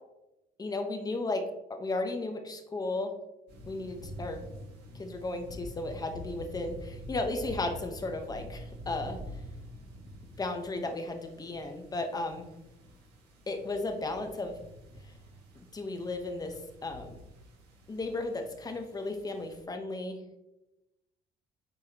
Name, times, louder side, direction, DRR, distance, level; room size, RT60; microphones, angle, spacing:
voice 1, 0.6-1.4 1.7-3.1 3.7-4.4 5.0-9.2 10.4-12.5 13.5-14.6 15.0-15.1 15.5-16.5 16.8-17.2 17.9-20.2, left 2 dB, 20° left, 5 dB, 1.0 m, -34 dB
sound 1, 3.5-19.6, equal, 80° right, 2.0 m, -47 dB
7.9 x 4.7 x 2.9 m, 0.96 s
cardioid pair, 110°, 17 cm